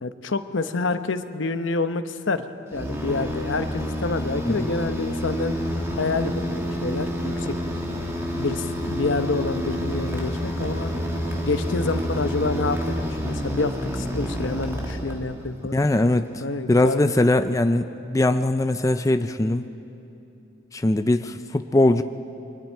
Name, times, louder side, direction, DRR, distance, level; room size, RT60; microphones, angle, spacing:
voice 1, 0.0-5.6 5.9-7.6 8.4-10.9 11.5-15.8 16.4-17.1, left 3 dB, 75° left, 9 dB, 0.9 m, -28 dB
sound 1, 2.7-15.6, equal, 15° right, 1.9 m, -28 dB
voice 2, 15.7-16.4 16.7-19.7 20.7-22.0, left 2 dB, 15° left, 8 dB, 0.4 m, -21 dB
29.0 x 23.5 x 4.6 m, 2.8 s
head